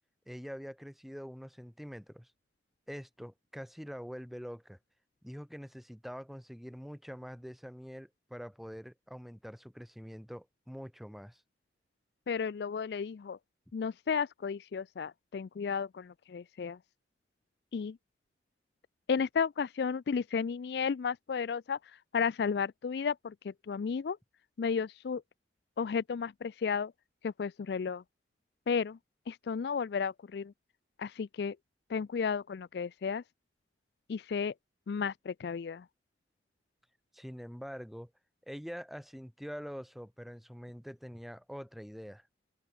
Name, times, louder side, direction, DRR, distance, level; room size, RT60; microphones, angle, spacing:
voice 1, 0.3-2.3 2.9-4.8 5.2-11.4 37.1-38.1 38.5-42.3, equal, ahead, 7.7 m, -45 dB
voice 2, 12.3-13.4 13.7-16.8 17.7-18.0 19.1-21.8 22.1-24.2 24.6-25.2 25.8-26.9 27.2-28.0 28.7-29.0 29.3-30.5 31.0-31.6 31.9-33.2 34.1-34.5 34.9-35.8, left 6 dB, 60° left, 0.4 m, -33 dB
open air
head